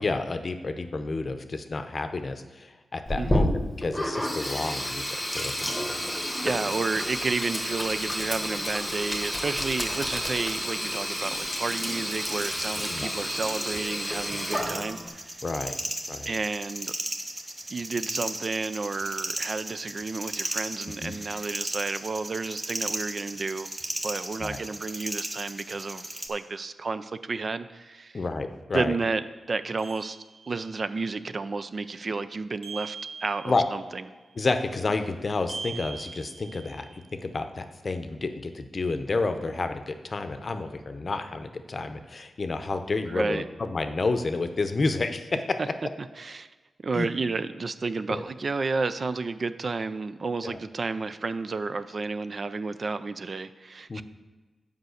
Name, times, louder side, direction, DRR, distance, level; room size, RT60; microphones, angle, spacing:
voice 1, 0.0-3.5 3.8-5.7 12.9-13.1 15.4-15.8 16.1-16.3 21.0-21.1 24.4-24.6 28.1-29.0 33.4-33.6 34.3-45.4 46.9-47.1 48.1-48.2 50.4-50.6 53.9-54.0, left 3 dB, 45° left, 8 dB, 0.7 m, -30 dB
Sink (filling or washing), 3.1-15.1, equal, 5° left, 1.3 m, -30 dB
voice 2, 3.2-3.5 5.9-6.1 6.4-15.2 16.3-16.9 17.7-23.7 24.0-26.0 26.3-28.2 28.7-30.2 30.5-33.0 33.2-34.0 43.1-43.4 46.2-46.5 46.8-54.0, right 4 dB, 50° right, 12 dB, 0.4 m, -31 dB
sound 1, 12.1-26.3, right 1 dB, 25° right, 0.9 m, -36 dB
sound 2, 29.8-30.8 32.6-33.9 35.5-37.0, right 5 dB, 65° right, 1.7 m, -41 dB
8.0 x 5.2 x 6.4 m, 1.3 s
wide cardioid pair, 95°, 0 cm